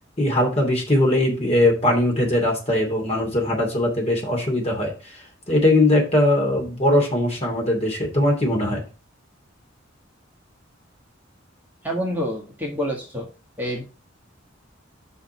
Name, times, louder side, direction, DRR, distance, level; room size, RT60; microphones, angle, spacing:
voice 1, 0.2-5.2 5.5-8.8, left 1 dB, 35° left, 0 dB, 2.7 m, -20 dB
voice 2, 11.8-13.3 13.6-13.8, equal, 10° right, -2 dB, 1.7 m, -27 dB
5.7 x 5.1 x 6.0 m, 0.32 s
head